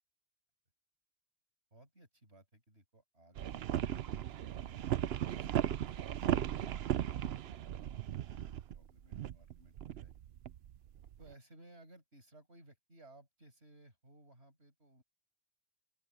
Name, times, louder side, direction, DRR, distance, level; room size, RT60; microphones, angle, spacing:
voice 1, 1.7-10.1 11.2-15.0, right 1 dB, 90° right, 7.1 m, -62 dB
sound 1, 3.4-11.3, right 11 dB, 75° right, 0.9 m, -36 dB
open air
omnidirectional pair, 1.1 m